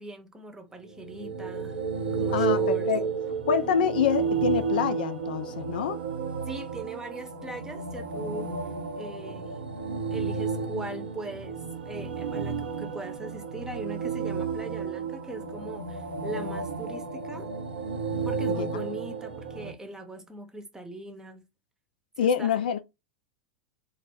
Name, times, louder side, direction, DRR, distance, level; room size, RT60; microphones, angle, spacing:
voice 1, 0.0-1.8 2.1-2.9 6.5-8.5 9.0-9.6 10.1-17.5 18.2-21.5 22.2-22.5, right 2 dB, 10° right, 0.7 m, -40 dB
sound 1, 0.9-19.7, right 5 dB, 85° right, 0.6 m, -32 dB
voice 2, 2.3-3.1 3.5-6.0 18.5-18.7 22.2-22.8, left 8 dB, 70° left, 0.4 m, -26 dB
3.1 x 2.0 x 3.4 m
figure-of-eight pair, 90°, 5 cm